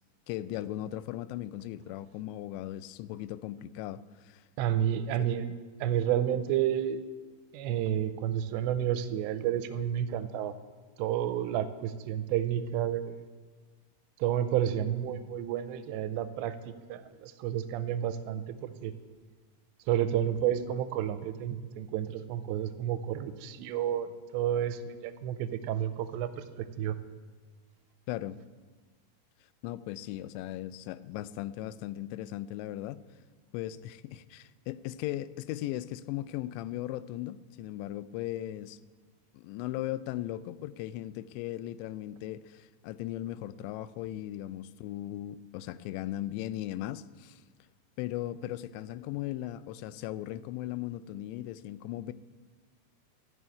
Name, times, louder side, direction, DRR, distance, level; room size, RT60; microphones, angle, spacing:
voice 1, 0.3-4.4 5.1-5.3 28.1-28.4 29.6-33.1 33.5-38.8 39.3-47.4 48.0-52.1, left 14 dB, 90° left, 2.8 m, -37 dB
voice 2, 4.6-5.5 5.8-7.0 7.5-10.5 11.0-13.2 14.2-16.6 16.9-18.9 19.9-27.0, right 10 dB, 85° right, 2.8 m, -30 dB
14.5 x 7.0 x 9.5 m
omnidirectional pair, 5.1 m